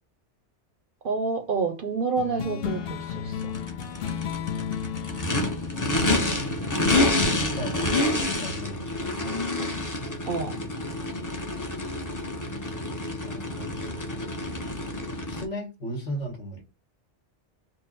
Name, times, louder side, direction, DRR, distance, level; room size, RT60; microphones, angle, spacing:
voice 1, 1.0-3.5 10.3-10.6, right 4 dB, 60° right, 0.6 m, -28 dB
sound 1, 2.2-7.1, left 8 dB, 65° left, 0.7 m, -34 dB
Race car auto racing / Idling / Accelerating revving vroom, 3.4-15.4, left 2 dB, 25° left, 0.5 m, -28 dB
voice 2, 6.4-8.0 8.4-9.3 13.2-14.1 15.3-16.6, equal, 85° left, 1.7 m, -37 dB
3.9 x 2.1 x 3.9 m
omnidirectional pair, 1.2 m